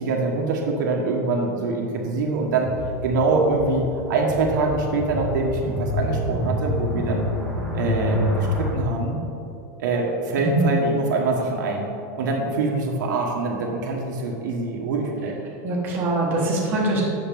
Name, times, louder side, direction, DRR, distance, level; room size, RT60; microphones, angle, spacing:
voice 1, 0.0-2.7 3.0-7.3 7.7-9.2 9.8-11.9 12.2-15.4, right 3 dB, 85° right, 0 dB, 1.2 m, -24 dB
sound 1, 2.5-8.7, left 1 dB, 5° left, 0.8 m, -27 dB
voice 2, 10.4-10.7 15.6-17.0, right 2 dB, 20° right, -6 dB, 1.3 m, -23 dB
7.6 x 6.2 x 3.5 m, 2.8 s
supercardioid pair, 180°, 10 cm